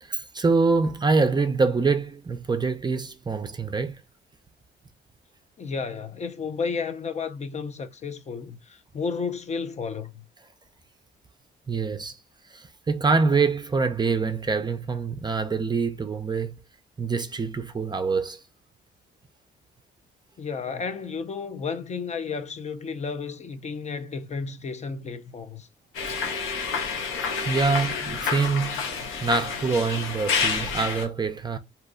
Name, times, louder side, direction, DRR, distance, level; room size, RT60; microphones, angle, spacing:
voice 1, 0.0-4.0 11.7-12.2 12.5-16.6 17.0-18.4 27.5-28.9 29.2-31.6, right 4 dB, 20° right, 0.4 m, -25 dB
voice 2, 5.6-10.2 20.4-25.7, left 5 dB, 35° left, 0.5 m, -32 dB
sound 1, 25.9-31.0, left 5 dB, 85° left, 0.8 m, -29 dB
2.7 x 2.2 x 3.8 m
cardioid pair, 90°, 20 cm